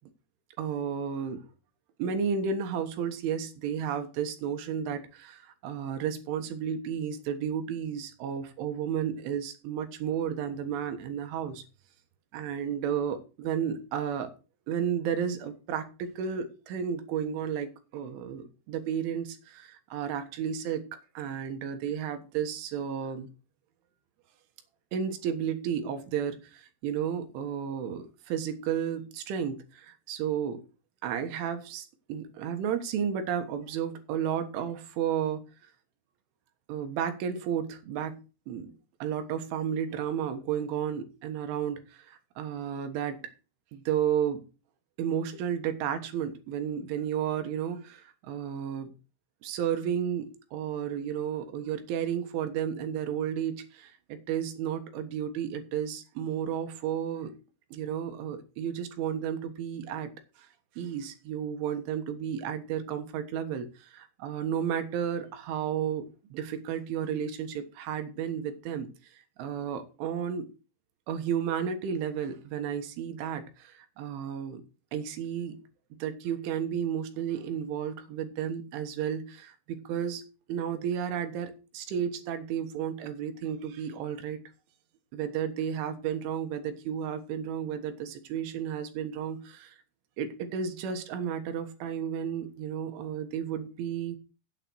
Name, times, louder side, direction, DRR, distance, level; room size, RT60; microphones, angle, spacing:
voice 1, 0.6-1.4 2.0-11.6 12.3-14.3 14.7-20.9 21.2-23.3 24.9-30.6 31.0-35.4 36.7-38.2 38.5-38.7 39.0-43.2 43.7-44.5 45.0-48.9 49.4-57.3 57.7-60.1 60.4-60.5 60.8-70.5 71.1-74.6 74.9-75.6 76.0-84.4 85.1-89.8 90.2-94.2, right 8 dB, 70° right, 8 dB, 3.6 m, -32 dB
8.7 x 8.3 x 6.2 m, 0.33 s
omnidirectional pair, 6.0 m